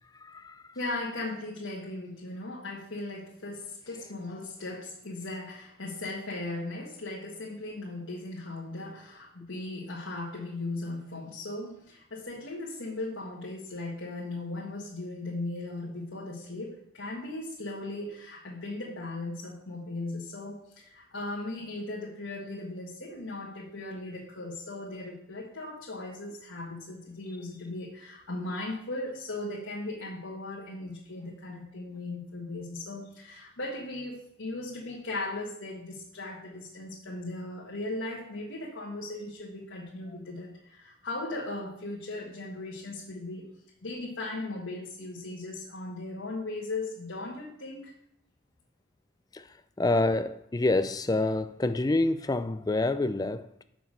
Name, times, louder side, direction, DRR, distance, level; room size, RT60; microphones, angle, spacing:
voice 1, 0.2-0.6 49.3-49.5 49.8-53.6, left 2 dB, 20° left, 0.4 m, -27 dB
voice 2, 0.7-43.5 43.8-47.9, left 2 dB, 80° left, 1.6 m, -37 dB
7.0 x 6.1 x 6.2 m
head